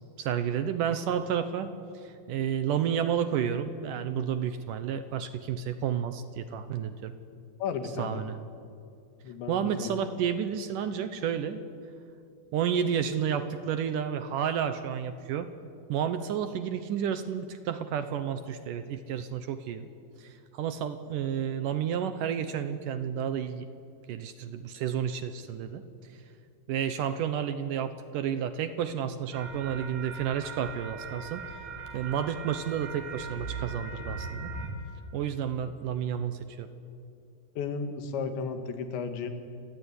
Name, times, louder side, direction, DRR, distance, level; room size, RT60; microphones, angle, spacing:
voice 1, 0.2-1.7 2.0-7.1 8.0-8.4 9.5-11.6 12.5-15.5 15.9-19.9 20.2-23.7 24.1-25.8 26.7-31.4 31.9-34.5 35.1-36.7, right 8 dB, 75° right, 10 dB, 2.0 m, -31 dB
voice 2, 7.6-8.2 9.2-9.9 37.6-39.3, left 5 dB, 85° left, 7 dB, 4.3 m, -34 dB
sound 1, 29.3-34.7, right 4 dB, 55° right, 4.7 m, -39 dB
28.5 x 19.5 x 9.9 m, 2.5 s
omnidirectional pair, 5.0 m